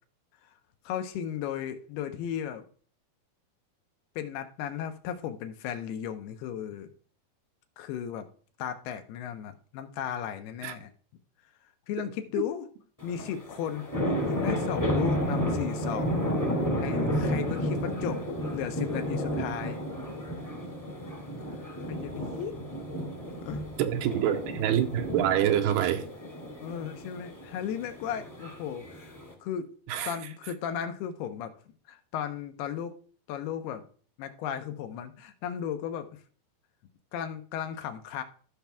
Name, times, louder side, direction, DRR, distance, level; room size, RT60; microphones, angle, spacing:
voice 1, 0.9-2.6 4.2-6.9 7.8-8.3 8.6-10.9 11.9-12.7 13.0-16.2 16.8-18.2 18.5-19.8 21.4-22.6 23.4-23.6 26.6-29.7 30.1-31.5 31.9-33.0 33.3-33.8 34.2-36.1 37.1-38.2, left 9 dB, 80° left, 2.7 m, -35 dB
sound 1, 13.0-29.3, equal, 10° left, 1.0 m, -32 dB
voice 2, 23.8-26.1 29.9-30.1, right 11 dB, 80° right, 2.7 m, -26 dB
14.0 x 5.9 x 3.4 m
omnidirectional pair, 4.7 m